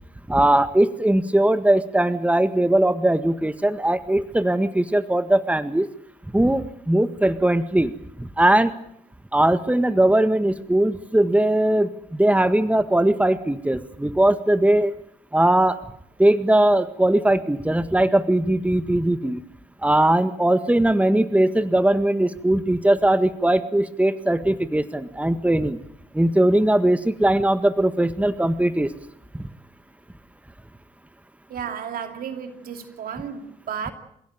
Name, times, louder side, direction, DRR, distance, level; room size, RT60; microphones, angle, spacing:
voice 1, 0.3-5.9 6.3-8.7 9.3-14.9 15.3-15.8 16.2-19.4 19.8-25.8 26.1-28.9 29.3-29.5, right 1 dB, 10° right, 1.8 m, -20 dB
voice 2, 31.5-33.9, right 7 dB, 65° right, 2.8 m, -33 dB
28.5 x 16.5 x 9.0 m
hypercardioid pair, 40°, 16 cm